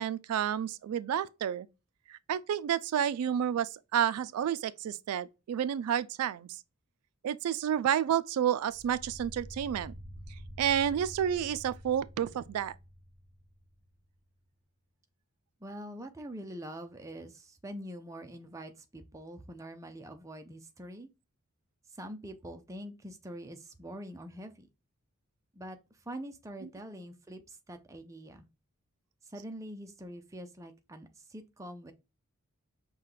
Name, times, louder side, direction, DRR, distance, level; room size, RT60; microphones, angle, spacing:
voice 1, 0.0-1.7 2.1-6.6 7.2-9.9 10.6-12.7, right 9 dB, 80° right, 0.3 m, -30 dB
sound 1, 8.6-13.9, equal, 40° left, 1.0 m, -48 dB
voice 2, 15.6-21.1 21.9-24.7 25.5-28.5 29.2-31.9, equal, 15° right, 0.4 m, -44 dB
5.6 x 2.2 x 3.1 m
head